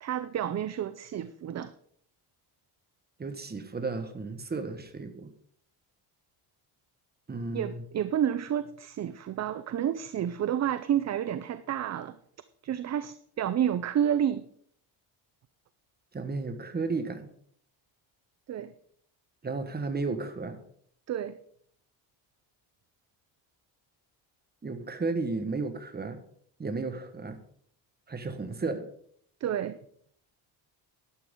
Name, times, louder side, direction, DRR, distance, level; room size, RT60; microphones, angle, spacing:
voice 1, 0.0-1.7 7.5-12.2 12.6-14.4 18.5-18.7 21.1-21.4 29.4-29.8, right 10 dB, 35° right, 13 dB, 0.5 m, -30 dB
voice 2, 3.2-5.3 7.3-7.8 16.1-17.3 19.4-20.6 24.6-26.2 26.6-27.4 28.1-28.8, right 3 dB, 20° right, 8 dB, 1.4 m, -33 dB
12.0 x 12.0 x 3.7 m, 0.63 s
cardioid pair, 125°, 48 cm